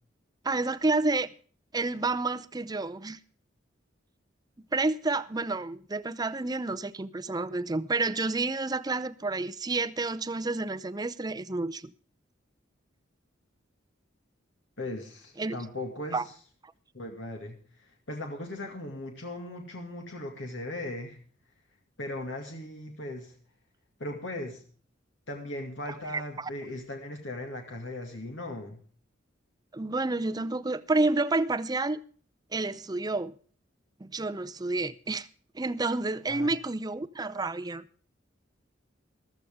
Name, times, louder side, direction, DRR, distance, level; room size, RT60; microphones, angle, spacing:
voice 1, 0.4-1.3 1.7-3.2 4.7-11.9 15.4-15.6 16.1-16.2 25.9-26.5 29.7-32.0 32.5-33.3 34.0-35.3 35.5-37.8, right 3 dB, 20° right, 0.6 m, -29 dB
voice 2, 14.8-16.2 16.9-21.2 22.0-23.4 24.0-24.6 25.3-28.8 36.3-36.5, left 1 dB, 70° left, 2.3 m, -38 dB
15.0 x 13.5 x 3.6 m
head